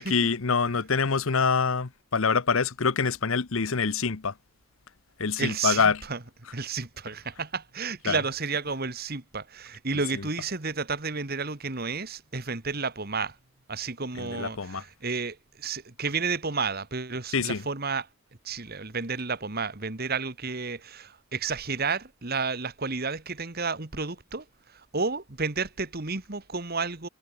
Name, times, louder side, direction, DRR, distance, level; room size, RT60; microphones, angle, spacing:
voice 1, 0.1-4.3 5.2-6.0 8.0-8.2 14.2-14.8 17.3-17.6, left 5 dB, 65° left, 0.9 m, -25 dB
voice 2, 5.4-6.2 6.5-13.4 13.7-18.1 18.4-24.4 24.7-27.1, right 4 dB, 45° right, 1.8 m, -31 dB
head